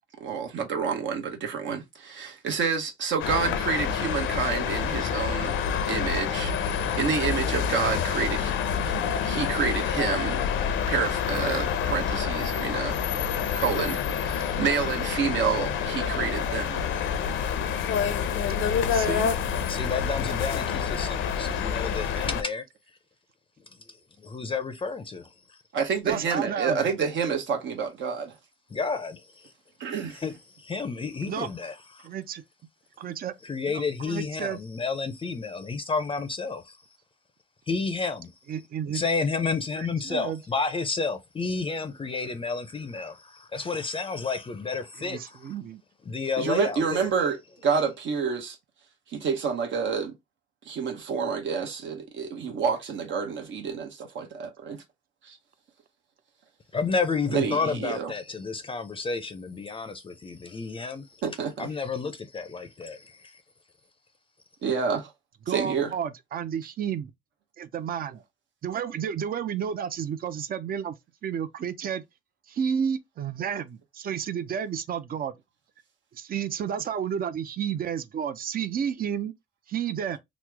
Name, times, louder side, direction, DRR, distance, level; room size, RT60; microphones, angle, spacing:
voice 1, 0.2-5.5 5.9-8.5 8.8-8.9 9.2-10.4 10.9-13.0 13.5-16.9 25.7-28.3 29.8-30.2 46.4-48.6 49.1-50.1 50.6-54.8 55.2-55.4 57.3-58.1 61.2-61.7 64.6-65.1 65.5-65.9, right 6 dB, 70° right, 0.9 m, -28 dB
sound 1, 3.2-22.4, left 7 dB, 80° left, 0.5 m, -27 dB
voice 2, 18.9-19.3 26.0-26.9 31.3-31.5 32.0-32.4 33.0-33.3 33.7-33.8 34.1-34.6 38.5-39.0 39.8-40.4 45.0-45.8 65.5-67.1 67.6-68.2 68.6-71.0 71.2-72.0 72.5-75.3 76.1-79.3 79.7-80.2, right 8 dB, 45° right, 0.5 m, -31 dB
voice 3, 19.5-22.6 23.6-25.6 28.7-29.5 30.1-32.1 33.4-36.8 37.7-38.3 38.9-45.5 46.0-47.1 56.7-61.2 61.6-63.4, left 4 dB, 25° left, 0.5 m, -31 dB
3.0 x 2.0 x 3.3 m
cardioid pair, 90°, 20 cm